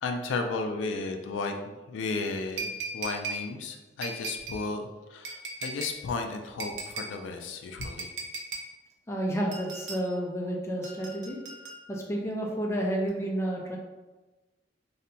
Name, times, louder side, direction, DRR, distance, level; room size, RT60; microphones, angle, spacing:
voice 1, 0.0-8.1, left 3 dB, 85° left, 5 dB, 0.3 m, -34 dB
sound 1, 2.6-3.4 4.0-4.6 5.2-6.0 6.6-7.1 7.8-8.7 9.5-10.0 10.8-12.1 13.1-13.2, right 3 dB, 70° right, 0.4 m, -37 dB
voice 2, 9.1-11.4 11.9-13.8, right 1 dB, 15° left, -1 dB, 0.4 m, -30 dB
2.7 x 2.1 x 2.6 m, 1.1 s
head